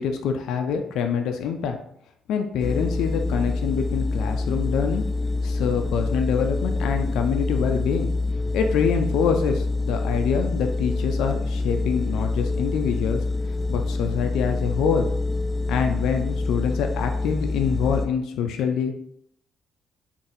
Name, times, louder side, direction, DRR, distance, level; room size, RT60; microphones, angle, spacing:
voice 1, 0.0-1.8 2.3-5.0 5.4-8.1 8.5-13.2 13.7-15.1 15.7-18.9, left 7 dB, 85° left, 5 dB, 0.4 m, -25 dB
sound 1, 2.6-18.1, left 3 dB, 20° left, 0.4 m, -26 dB
4.0 x 2.6 x 2.5 m, 0.68 s
cardioid pair, 90°, 0 cm